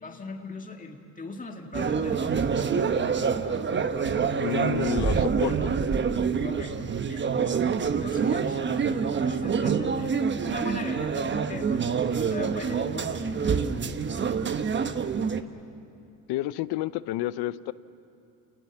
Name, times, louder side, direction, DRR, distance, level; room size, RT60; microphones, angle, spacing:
voice 1, 0.0-2.5 6.4-6.8 7.1-7.3 7.6-10.2 10.5-14.3, left 3 dB, 20° left, 3 dB, 2.1 m, -40 dB
sound 1, 1.7-15.4, right 6 dB, 25° right, 1.0 m, -26 dB
voice 2, 4.4-5.8 16.3-17.7, left 15 dB, 60° left, 17 dB, 0.7 m, -30 dB
29.0 x 19.5 x 7.2 m, 2.6 s
supercardioid pair, 95°, 42 cm